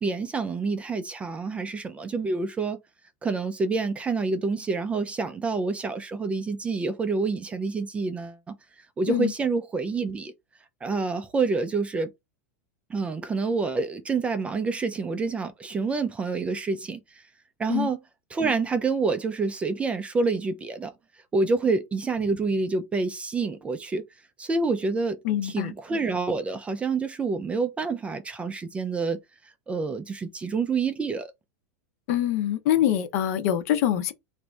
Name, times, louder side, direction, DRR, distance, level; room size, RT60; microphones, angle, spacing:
voice 1, 0.0-2.8 3.2-8.5 9.0-10.3 10.8-12.1 12.9-17.0 17.6-18.0 18.3-20.9 21.3-24.1 24.4-29.2 29.7-31.3, right 4 dB, 15° right, 0.3 m, -27 dB
voice 2, 25.2-25.7 32.1-34.1, left 11 dB, 55° left, 0.7 m, -24 dB
2.9 x 2.6 x 3.4 m
supercardioid pair, 145°, 9 cm